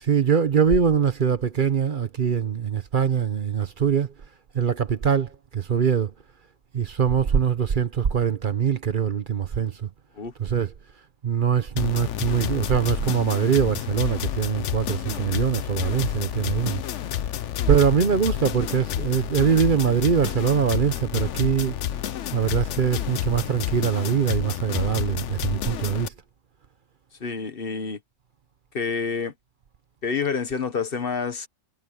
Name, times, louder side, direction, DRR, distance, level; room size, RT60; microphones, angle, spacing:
voice 1, 0.0-4.1 4.5-6.1 6.7-9.9 10.4-10.7 11.2-16.8 17.7-21.7 22.3-26.1, right 7 dB, 50° right, 0.9 m, -23 dB
sound 1, 11.8-26.1, left 10 dB, 85° left, 1.1 m, -30 dB
voice 2, 27.2-28.0 28.7-29.3 30.0-31.5, left 5 dB, 55° left, 1.4 m, -28 dB
omnidirectional pair, 1.2 m